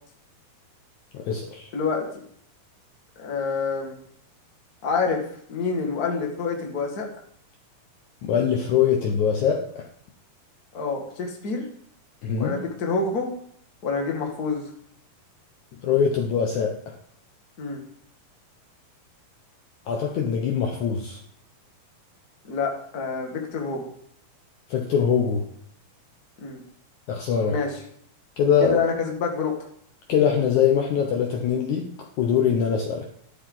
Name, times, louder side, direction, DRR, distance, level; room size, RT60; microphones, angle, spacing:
voice 1, 1.1-1.7 8.2-9.8 12.2-12.6 15.8-16.7 19.9-21.2 24.7-25.4 27.1-27.6 28.4-28.8 30.1-31.9 32.2-33.2, left 7 dB, 65° left, 1 dB, 2.1 m, -23 dB
voice 2, 1.7-2.2 3.2-4.0 4.8-5.2 5.5-7.1 10.7-11.7 12.4-13.3 13.8-14.7 17.6-17.8 22.4-23.9 26.4-26.6 27.5-27.8 28.6-29.6, left 4 dB, 35° left, 1 dB, 1.7 m, -27 dB
14.0 x 12.0 x 4.0 m, 0.67 s
omnidirectional pair, 4.4 m